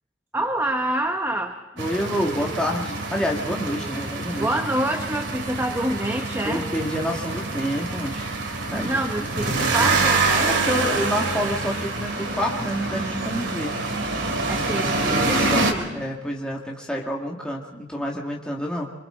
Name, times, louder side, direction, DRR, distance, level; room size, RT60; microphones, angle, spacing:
voice 1, 0.3-1.5 4.4-6.6 8.7-10.5 14.5-15.9, right 1 dB, 15° right, 4 dB, 1.0 m, -27 dB
voice 2, 1.8-4.6 6.4-8.2 8.7-9.3 10.6-13.7 15.0-18.9, equal, 5° left, -2 dB, 2.1 m, -28 dB
sound 1, 1.8-15.7, right 3 dB, 80° right, 3.1 m, -26 dB
27.5 x 25.0 x 3.9 m, 1.1 s
head